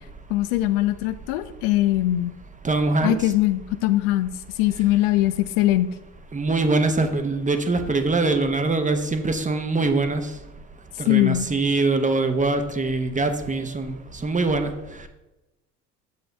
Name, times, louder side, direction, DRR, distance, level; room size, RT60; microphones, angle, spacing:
voice 1, 0.3-2.3 3.0-4.3 4.6-6.0 11.1-11.5, left 15 dB, 55° left, 11 dB, 0.6 m, -21 dB
voice 2, 2.6-3.3 6.3-10.3 11.0-14.7, right 3 dB, 15° right, 8 dB, 0.9 m, -23 dB
8.3 x 7.7 x 3.2 m, 1.0 s
figure-of-eight pair, 55°, 47 cm